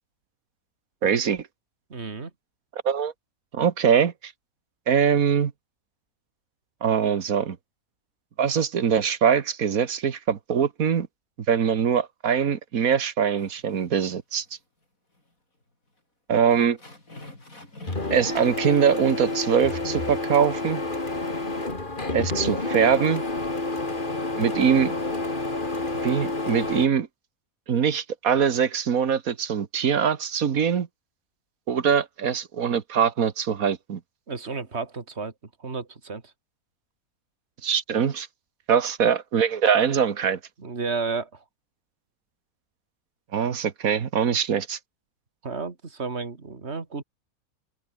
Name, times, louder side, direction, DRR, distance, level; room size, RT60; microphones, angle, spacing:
voice 1, 1.0-1.4 2.7-3.1 3.5-4.3 4.9-5.5 6.8-7.6 8.4-11.1 11.5-14.5 16.3-16.8 18.1-20.8 22.1-23.2 24.4-24.9 26.0-27.1 27.7-30.9 31.7-34.0 37.6-38.3 38.7-40.4 43.3-44.8, right 7 dB, 75° right, 1.8 m, -23 dB
voice 2, 1.9-2.3 34.3-35.3 35.6-36.3 40.6-41.4 45.4-47.0, right 4 dB, 50° right, 2.7 m, -32 dB
sound 1, 13.4-14.1 14.4-14.5 15.1-15.2 15.6-15.7 16.5-18.2, left 2 dB, 70° left, 7.3 m, -46 dB
Printer, 17.9-26.9, left 2 dB, 35° left, 3.3 m, -29 dB
open air
omnidirectional pair, 1.5 m